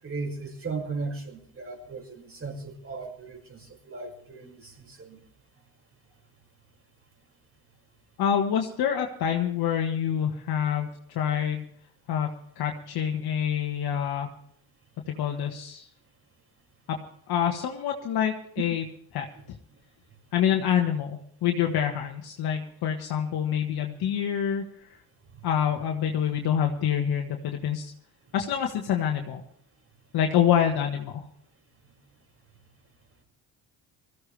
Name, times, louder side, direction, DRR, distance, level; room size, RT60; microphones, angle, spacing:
voice 1, 0.0-5.2 19.4-19.5 25.3-25.4, right 3 dB, 35° right, 3 dB, 5.7 m, -37 dB
voice 2, 8.2-11.7 12.1-14.3 15.1-15.9 16.9-17.0 17.3-18.8 19.1-19.2 20.3-24.6 25.4-27.9 28.3-29.4 30.1-31.2, left 9 dB, 65° left, 2 dB, 1.6 m, -26 dB
20.5 x 15.0 x 3.4 m, 0.63 s
supercardioid pair, 70°, 40 cm